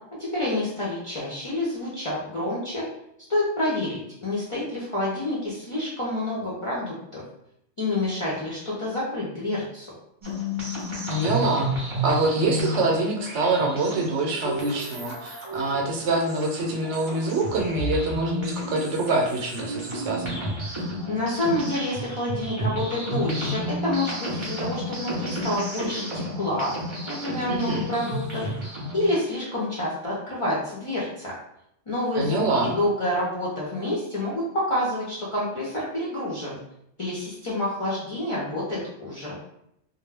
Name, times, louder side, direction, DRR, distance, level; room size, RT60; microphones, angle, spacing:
voice 1, 0.2-2.9 3.3-7.2 7.8-9.9 21.1-26.7 27.1-28.5 28.9-31.3 31.9-36.6 37.0-39.4, left 1 dB, 45° left, -7 dB, 0.4 m, -28 dB
sound 1, 10.2-29.1, equal, 35° right, 0.5 m, -32 dB
voice 2, 11.1-11.7 12.0-20.5 27.5-27.9 32.1-32.8, right 2 dB, 75° right, 0 dB, 0.8 m, -25 dB
2.1 x 2.0 x 3.2 m, 0.78 s
omnidirectional pair, 1.2 m